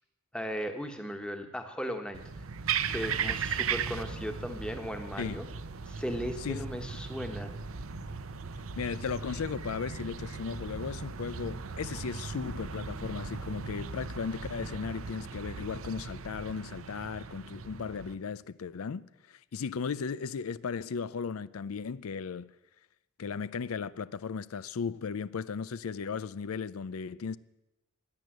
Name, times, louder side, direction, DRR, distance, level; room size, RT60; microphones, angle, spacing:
voice 1, 0.3-2.2 2.9-5.4 5.9-7.5, equal, 5° left, 1.3 m, -37 dB
sound 1, 2.1-18.2, right 5 dB, 80° right, 0.8 m, -37 dB
voice 2, 8.8-22.5 23.2-27.4, left 5 dB, 90° left, 0.5 m, -36 dB
16.5 x 11.0 x 8.0 m
head